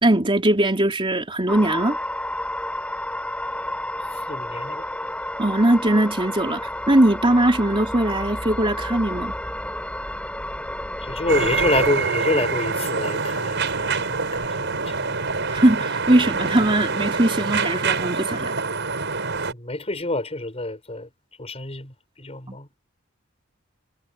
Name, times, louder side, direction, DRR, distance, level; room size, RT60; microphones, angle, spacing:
voice 1, 0.0-2.0 5.4-9.3 15.5-18.5 22.5-22.6, right 1 dB, 25° right, 3.4 m, -20 dB
sound 1, 1.5-11.9, left 1 dB, 5° left, 7.6 m, -31 dB
voice 2, 4.3-4.9 11.0-15.2 19.5-21.1 21.4-22.7, left 2 dB, 30° left, 6.2 m, -27 dB
sound 2, 11.3-19.5, right 4 dB, 60° right, 6.9 m, -25 dB
head